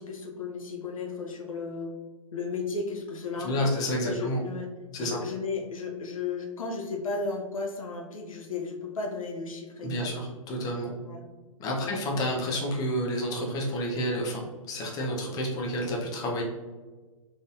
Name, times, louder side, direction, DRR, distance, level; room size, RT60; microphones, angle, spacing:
voice 1, 0.0-1.9 2.3-3.7 4.0-4.7 5.0-10.1 11.1-11.3 11.8-12.0, left 4 dB, 70° left, 2 dB, 0.8 m, -34 dB
voice 2, 3.4-4.4 4.9-5.2 9.8-11.0 11.6-16.4, equal, 20° left, -1 dB, 0.7 m, -30 dB
3.9 x 3.4 x 2.6 m, 1.3 s
figure-of-eight pair, 120°, 18 cm